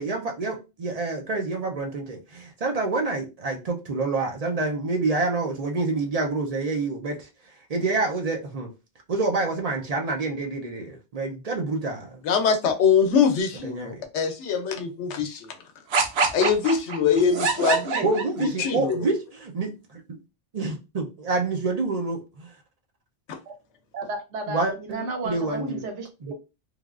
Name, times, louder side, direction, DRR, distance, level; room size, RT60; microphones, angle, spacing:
voice 1, 0.0-7.3 7.7-8.7 9.1-12.2 13.6-14.0 18.0-20.2 20.5-22.5 24.5-25.9 26.2-26.3, right 3 dB, 50° right, 0.5 m, -27 dB
voice 2, 12.2-15.5 16.3-18.0 18.4-19.1 23.3-23.4, left 6 dB, 90° left, 0.9 m, -23 dB
sound 1, 15.9-18.7, right 4 dB, 70° right, 0.8 m, -25 dB
voice 3, 23.9-26.3, right 3 dB, 90° right, 1.1 m, -33 dB
3.2 x 2.3 x 2.3 m
omnidirectional pair, 1.2 m